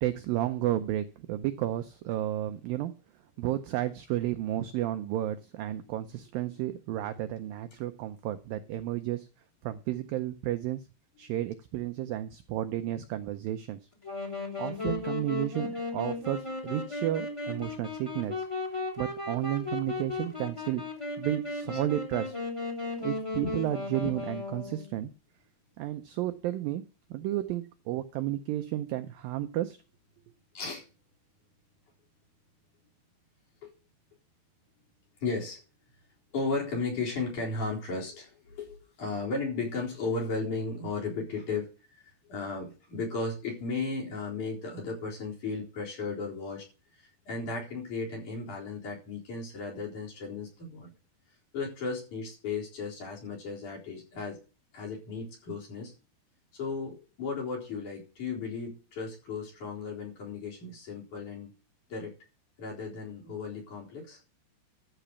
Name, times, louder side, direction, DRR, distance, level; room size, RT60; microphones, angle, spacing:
voice 1, 0.0-2.9 3.4-9.3 9.6-10.8 11.2-13.8 14.6-18.5 19.0-20.8 21.2-22.4 23.0-25.1 25.8-26.8 27.1-29.8, right 13 dB, 85° right, 9 dB, 2.0 m, -32 dB
Wind instrument woodwind instrument, 14.0-24.9, left 2 dB, 10° left, 2.3 m, -36 dB
voice 2, 30.5-30.9 33.6-33.7 35.2-35.6 36.3-46.6 46.9-50.9 51.5-54.4 54.7-55.9 56.5-61.5 61.9-62.1 62.6-64.2, left 4 dB, 45° left, -2 dB, 5.4 m, -35 dB
13.5 x 5.0 x 6.9 m, 0.33 s
omnidirectional pair, 4.9 m